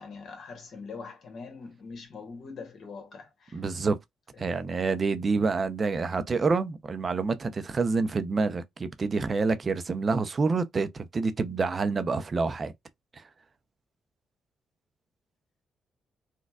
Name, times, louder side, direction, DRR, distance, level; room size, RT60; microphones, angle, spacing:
voice 1, 0.0-3.6, left 4 dB, 65° left, 1.4 m, -43 dB
voice 2, 3.5-4.0 4.4-12.7 13.2-13.3, right 4 dB, 40° right, 0.5 m, -27 dB
4.0 x 2.3 x 2.3 m
supercardioid pair, 70°, 0 cm